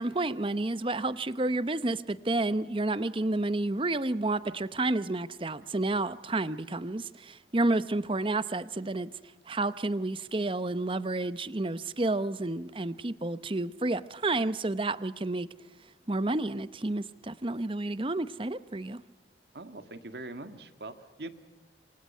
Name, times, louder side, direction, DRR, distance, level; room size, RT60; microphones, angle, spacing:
voice 1, 0.0-9.1 9.5-15.5 16.1-19.0, right 2 dB, 30° right, 14 dB, 0.8 m, -30 dB
voice 2, 19.5-21.3, right 2 dB, 70° right, 8 dB, 1.9 m, -42 dB
27.5 x 25.0 x 5.6 m, 1.2 s
head